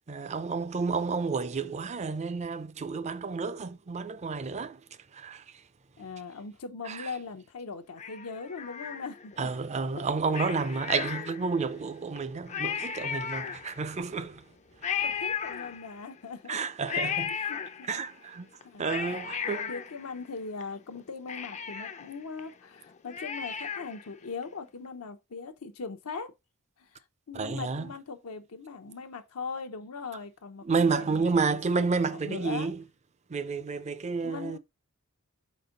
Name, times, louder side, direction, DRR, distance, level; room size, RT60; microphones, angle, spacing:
voice 1, 0.1-4.8 5.1-5.6 6.8-7.1 9.4-14.4 14.8-15.0 16.5-17.3 17.9-18.5 18.8-19.7 27.3-27.9 30.6-32.8 33.3-34.6, right 4 dB, 30° right, 0.5 m, -30 dB
voice 2, 6.0-9.5 10.0-10.1 10.5-10.6 15.0-16.6 16.9-18.0 18.6-19.2 19.4-26.3 26.8-26.9 27.3-32.7 34.2-34.6, left 4 dB, 80° left, 0.7 m, -40 dB
Cat, 8.0-9.5 10.3-11.7 12.2-12.3 12.5-14.0 14.8-16.2 16.9-18.1 18.6-20.6 20.9-21.0 21.3-24.1 24.4-24.5, left 7 dB, 30° left, 0.4 m, -35 dB
4.4 x 4.2 x 5.1 m
head